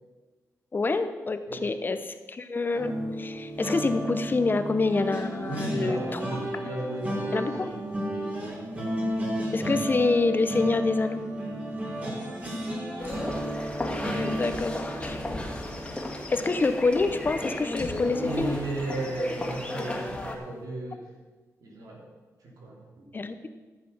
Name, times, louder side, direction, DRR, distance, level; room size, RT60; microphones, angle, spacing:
voice 1, 0.7-6.2 7.3-7.8 9.5-11.2 14.0-15.2 16.3-18.6 23.1-23.5, left 3 dB, 35° left, 9 dB, 0.9 m, -27 dB
sound 1, 2.7-17.9 18.3-18.5 18.8-19.0, equal, 25° right, 3.5 m, -34 dB
voice 2, 5.4-9.3 12.0-12.2 18.0-21.1 21.6-22.0 22.4-23.1, right 2 dB, 80° right, -1 dB, 3.6 m, -35 dB
sound 2, 13.0-20.4, left 1 dB, 15° left, 2.1 m, -34 dB
13.5 x 7.7 x 6.1 m, 1.3 s
cardioid pair, 95°, 6 cm